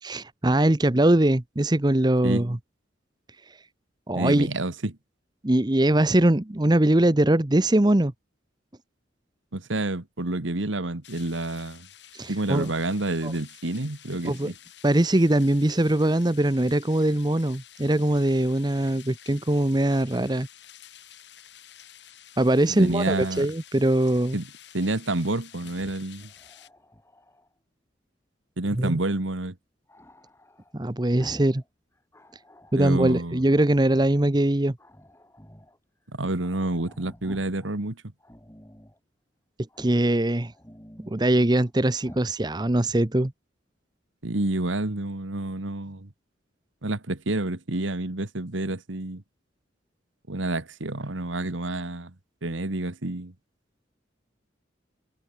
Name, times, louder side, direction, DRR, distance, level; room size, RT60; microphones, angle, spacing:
voice 1, 0.0-2.6 4.1-4.5 5.4-8.1 12.1-12.7 13.2-13.3 14.2-14.5 14.8-20.5 22.4-24.4 28.7-29.0 30.7-31.6 32.7-34.8 39.8-40.5 41.0-43.3, right 1 dB, 20° right, 0.8 m, -22 dB
voice 2, 4.1-4.9 9.5-11.9 12.3-14.6 22.7-23.5 24.3-24.4 24.7-26.3 28.6-29.6 32.8-33.4 36.1-38.0 44.2-46.1 46.8-49.2 50.3-52.1 52.4-53.3, right 2 dB, 85° right, 1.8 m, -29 dB
sound 1, 11.0-26.7, left 11 dB, 65° left, 4.7 m, -50 dB
Growling, 25.5-27.5 29.9-31.7 32.0-32.9 33.4-34.3 34.8-35.8 36.1-36.2 36.4-37.7 38.2-39.0 39.7-40.1 40.5-41.7 42.0-42.3, equal, 15° left, 4.5 m, -49 dB
head